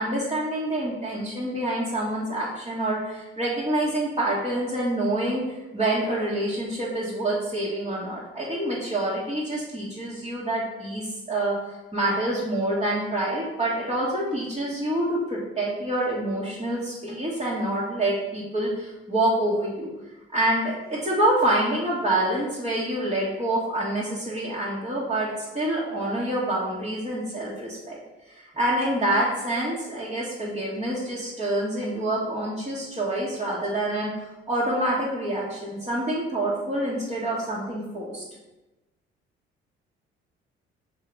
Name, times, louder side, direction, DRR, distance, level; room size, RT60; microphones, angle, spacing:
voice 1, 0.0-5.4 5.7-19.9 20.3-28.0 28.3-38.2, right 1 dB, 20° right, -8 dB, 1.9 m, -27 dB
5.5 x 3.9 x 4.8 m, 1.1 s
hypercardioid pair, 50°, 32 cm